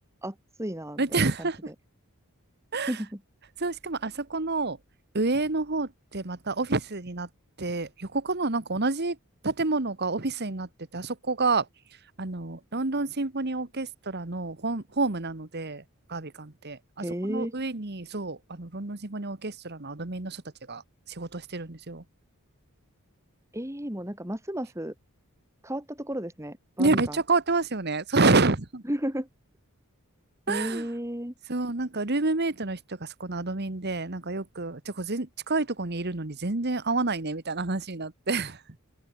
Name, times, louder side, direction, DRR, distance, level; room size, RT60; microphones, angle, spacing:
voice 1, 0.2-1.5 2.9-3.2 17.0-17.5 23.5-24.9 25.6-27.2 28.9-29.3 30.5-31.3, equal, 15° right, 2.7 m, -33 dB
voice 2, 1.0-1.7 2.7-3.0 3.6-4.8 5.1-7.3 7.6-9.2 9.4-11.7 12.2-15.8 16.1-20.4 20.7-20.8 21.1-22.0 26.8-28.8 30.5-30.9 31.5-38.6, right 3 dB, 45° right, 1.5 m, -28 dB
open air
head